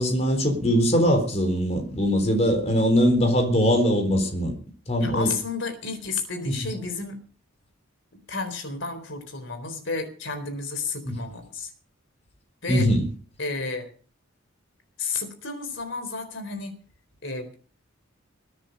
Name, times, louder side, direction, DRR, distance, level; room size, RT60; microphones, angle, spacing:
voice 1, 0.0-4.5 4.9-5.3 6.5-6.6 11.1-11.2 12.7-13.1, equal, 30° left, 4.0 m, -21 dB
voice 2, 5.0-7.2 8.3-11.7 12.6-12.9 13.4-13.9 15.0-16.8 17.2-17.6, left 4 dB, 60° left, 4.1 m, -32 dB
22.0 x 9.8 x 5.3 m
head